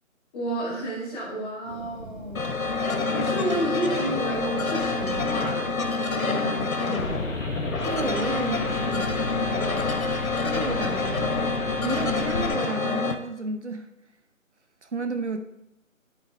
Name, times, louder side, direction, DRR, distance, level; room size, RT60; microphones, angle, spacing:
voice 1, 0.3-2.5 3.1-5.6 6.2-7.4, right 1 dB, 5° left, 2.1 m, -31 dB
Thunder, 1.7-11.3, right 3 dB, 75° right, 1.7 m, -44 dB
sound 1, 2.4-13.2, left 4 dB, 80° left, 1.2 m, -27 dB
sound 2, 7.0-12.5, left 2 dB, 60° left, 1.7 m, -34 dB
voice 2, 7.8-10.0 10.4-11.4 11.8-13.9 14.8-15.6, right 3 dB, 55° right, 0.9 m, -32 dB
11.0 x 7.6 x 3.4 m
figure-of-eight pair, 175°, 42 cm